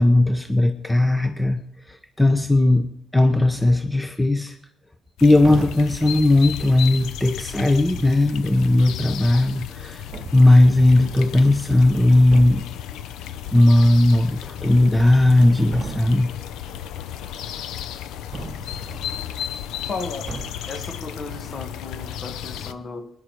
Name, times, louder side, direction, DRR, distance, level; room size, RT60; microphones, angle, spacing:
voice 1, 0.0-1.6 1.9-2.9 3.1-4.5 5.2-10.0 10.3-12.6 13.5-16.3, left 1 dB, 10° left, 7 dB, 1.0 m, -17 dB
sound 1, 5.2-22.7, left 10 dB, 90° left, 0.6 m, -34 dB
sound 2, 5.4-6.0 7.7-8.3 9.5-9.6 10.1-11.3 11.8-11.9 12.3-12.8 14.3-15.0 15.3-16.4 18.3-19.3 20.3-20.8, right 4 dB, 40° right, 0.8 m, -37 dB
voice 2, 19.9-20.3 20.7-23.1, left 3 dB, 40° left, 7 dB, 1.8 m, -34 dB
19.5 x 10.0 x 4.7 m, 0.73 s
cardioid pair, 90°, 0 cm